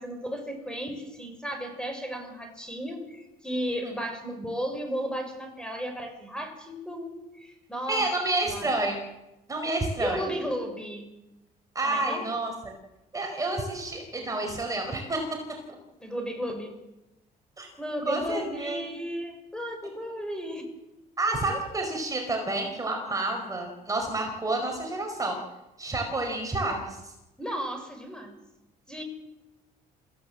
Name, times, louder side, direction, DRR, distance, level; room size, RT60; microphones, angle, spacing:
voice 1, 0.0-8.1 8.4-8.7 10.0-11.1 11.8-12.2 16.0-16.8 17.8-20.6 27.4-28.4 28.9-29.0, equal, 5° left, 5 dB, 5.8 m, -34 dB
voice 2, 7.9-9.0 9.5-10.2 11.7-12.7 13.1-15.6 17.6-17.7 18.1-18.9 21.2-25.4 25.8-27.1, right 2 dB, 20° right, 2 dB, 4.8 m, -29 dB
26.5 x 16.0 x 7.8 m, 0.96 s
cardioid pair, 110°, 17 cm